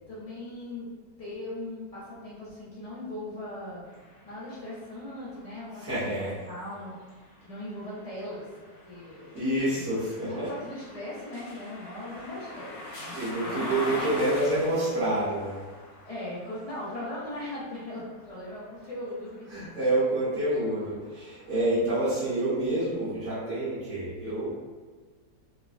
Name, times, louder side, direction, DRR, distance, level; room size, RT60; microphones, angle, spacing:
voice 1, 0.1-0.9 1.2-3.8 4.2-6.9 7.4-8.5 8.8-9.4 9.7-9.8 10.2-13.8 14.6-14.7 16.0-19.6 20.4-20.6, left 1 dB, 40° left, -9 dB, 0.5 m, -39 dB
sound 1, 3.9-19.8 20.4-21.6, left 1 dB, 70° left, 1.3 m, -43 dB
voice 2, 5.8-6.4 9.3-10.5 13.1-15.6 19.5-24.5, right 1 dB, 50° right, -13 dB, 1.2 m, -28 dB
3.2 x 2.1 x 2.4 m, 1.5 s
omnidirectional pair, 1.8 m